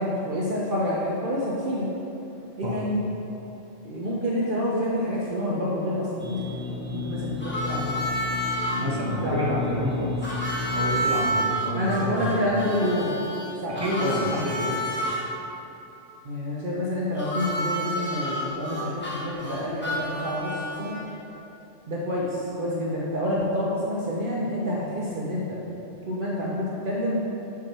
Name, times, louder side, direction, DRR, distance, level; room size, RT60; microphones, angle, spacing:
voice 1, 0.0-1.9 2.6-3.0 3.8-8.0 9.2-9.6 11.7-13.2 13.6-14.5 16.2-21.0 21.9-25.6 26.1-27.2, left 1 dB, 50° right, -6 dB, 0.9 m, -28 dB
sound 1, 6.2-11.2, left 4 dB, 65° right, 2.0 m, -33 dB
Harmonica, 7.4-8.8 10.2-15.2 17.2-21.1, equal, 10° left, 1.2 m, -30 dB
voice 2, 8.8-10.4 10.7-12.4 13.8-14.7, equal, 20° right, -5 dB, 1.0 m, -29 dB
6.1 x 5.8 x 4.3 m, 3.0 s
omnidirectional pair, 1.2 m